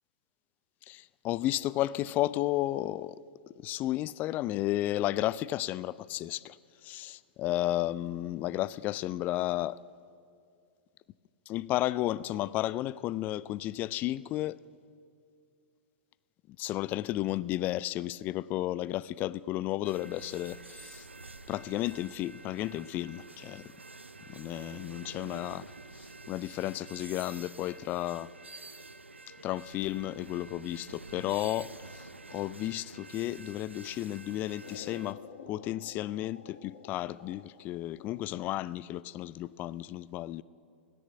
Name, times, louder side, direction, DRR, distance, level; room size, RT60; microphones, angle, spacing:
voice 1, 0.9-3.2 3.6-6.6 6.8-9.8 11.5-14.6 16.5-21.1 21.5-23.7 24.3-25.6 26.3-28.3 29.4-35.2 35.5-40.4, left 15 dB, 30° left, 0.3 m, -33 dB
sound 1, 19.8-35.1, right 3 dB, 85° right, 0.5 m, -48 dB
sound 2, 34.6-38.6, left 6 dB, 50° left, 1.4 m, -50 dB
17.0 x 10.5 x 7.8 m
figure-of-eight pair, 105°, 6 cm